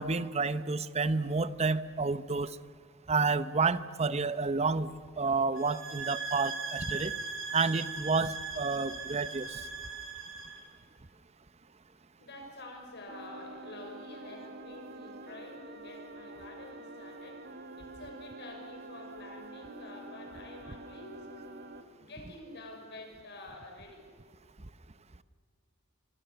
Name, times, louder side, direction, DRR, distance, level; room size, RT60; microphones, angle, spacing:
voice 1, 0.0-2.5 3.1-4.9 5.2-7.1 7.5-9.6, right 4 dB, 30° right, 14 dB, 0.8 m, -30 dB
sound 1, 5.6-10.6, right 4 dB, 75° right, 6.2 m, -39 dB
voice 2, 12.2-17.4 17.8-21.4 22.0-24.1, left 2 dB, 55° left, 2 dB, 6.2 m, -48 dB
sound 2, 13.1-21.8, right 2 dB, 50° right, 1.9 m, -47 dB
27.0 x 24.5 x 6.9 m, 2.1 s
head